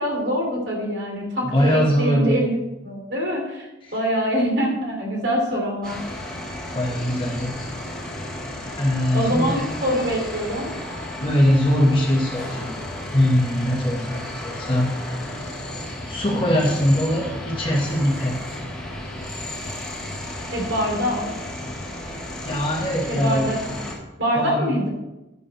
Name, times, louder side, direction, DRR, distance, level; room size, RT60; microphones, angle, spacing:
voice 1, 0.0-3.7 3.9-6.0 9.1-10.8 20.5-21.3 23.1-23.8 24.2-24.9, equal, 65° right, 0 dB, 3.1 m, -24 dB
voice 2, 1.4-2.4 3.8-3.9 6.7-7.5 8.8-9.6 11.2-12.8 13.1-15.3 16.1-18.3 22.4-23.5 24.4-24.7, equal, 30° left, -3 dB, 1.8 m, -21 dB
sound 1, 5.8-23.9, left 1 dB, 5° left, 3.3 m, -33 dB
11.0 x 6.1 x 6.4 m, 0.98 s
head